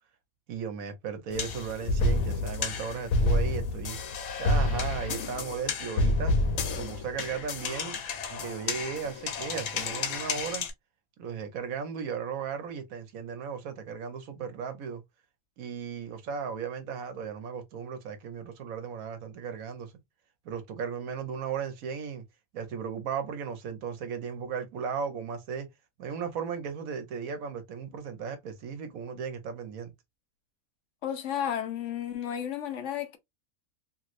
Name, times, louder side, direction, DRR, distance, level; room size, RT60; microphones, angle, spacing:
voice 1, 0.5-4.0 4.4-6.3 6.7-8.0 8.3-10.7 11.2-15.0 15.6-19.9 20.4-22.2 22.5-25.7 26.0-29.9, right 6 dB, 80° right, 1.2 m, -36 dB
sound 1, 1.3-10.7, left 2 dB, 90° left, 1.3 m, -29 dB
voice 2, 31.0-33.2, left 9 dB, 65° left, 1.0 m, -32 dB
3.1 x 3.1 x 2.5 m
omnidirectional pair, 1.4 m